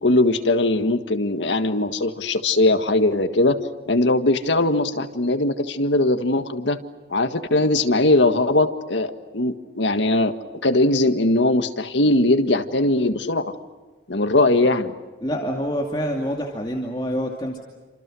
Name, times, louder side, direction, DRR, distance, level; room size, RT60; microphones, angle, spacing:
voice 1, 0.0-3.6 3.9-6.8 7.1-13.5 14.1-14.9, left 2 dB, 85° left, 8 dB, 1.8 m, -20 dB
voice 2, 15.2-17.6, equal, 25° left, 0 dB, 2.4 m, -26 dB
29.5 x 27.0 x 6.3 m, 1.3 s
head